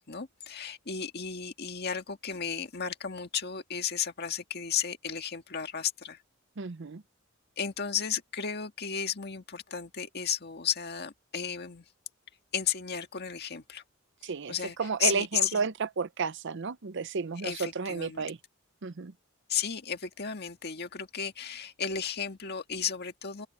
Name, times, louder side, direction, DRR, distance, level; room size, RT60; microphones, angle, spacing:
voice 1, 0.0-6.2 7.6-11.8 12.5-13.8 14.2-15.7 17.4-18.2 19.5-23.5, left 8 dB, 50° left, 1.8 m, -34 dB
voice 2, 6.6-7.0 14.2-18.4 18.8-19.1, right 5 dB, 60° right, 0.6 m, -32 dB
open air
head